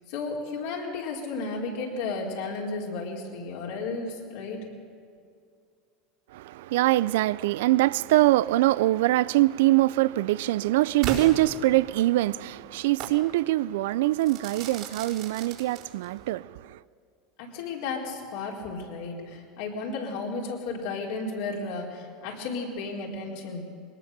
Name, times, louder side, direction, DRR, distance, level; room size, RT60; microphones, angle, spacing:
voice 1, 0.1-4.6 17.4-23.6, left 3 dB, 70° left, 4.4 m, -33 dB
voice 2, 6.3-16.8, right 17 dB, 75° right, 0.4 m, -23 dB
Crackle / Fireworks, 11.0-12.2 13.0-13.2 14.2-16.2, right 7 dB, 60° right, 4.2 m, -36 dB
21.5 x 18.5 x 6.8 m
hypercardioid pair, 95°, 0 cm